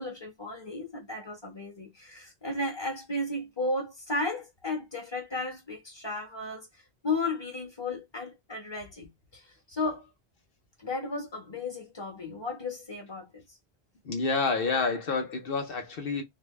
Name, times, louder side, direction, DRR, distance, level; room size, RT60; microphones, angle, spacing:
voice 1, 0.0-6.7 7.0-9.1 9.3-9.4 9.7-10.0 10.8-13.4, left 2 dB, 25° left, 1.4 m, -34 dB
voice 2, 14.0-16.2, left 4 dB, 60° left, 0.9 m, -28 dB
3.9 x 2.2 x 3.2 m
omnidirectional pair, 1.1 m